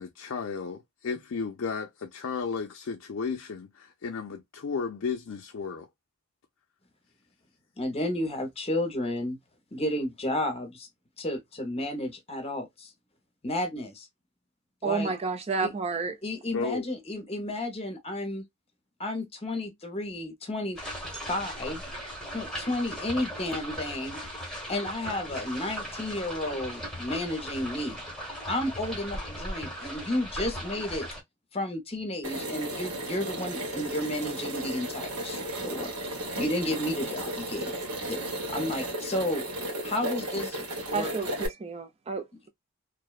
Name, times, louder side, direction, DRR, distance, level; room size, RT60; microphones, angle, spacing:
voice 1, 0.0-5.9 16.5-16.8, left 5 dB, 60° left, 0.4 m, -34 dB
voice 2, 7.8-9.4 9.7-10.9 11.2-12.9 13.4-14.1 14.8-15.1 15.6-15.7 16.2-18.4 19.0-20.8 21.3-21.8 22.3-24.2 24.7-28.0 28.5-31.1 31.5-35.9 36.4-37.7 38.1-39.4 39.8-41.1, left 1 dB, 25° left, 0.7 m, -32 dB
voice 3, 14.8-16.2 40.9-42.5, right 4 dB, 25° right, 0.4 m, -31 dB
sound 1, 20.8-31.2, equal, ahead, 1.1 m, -38 dB
sound 2, 32.2-41.5, right 1 dB, 85° right, 1.1 m, -34 dB
2.6 x 2.1 x 2.3 m
head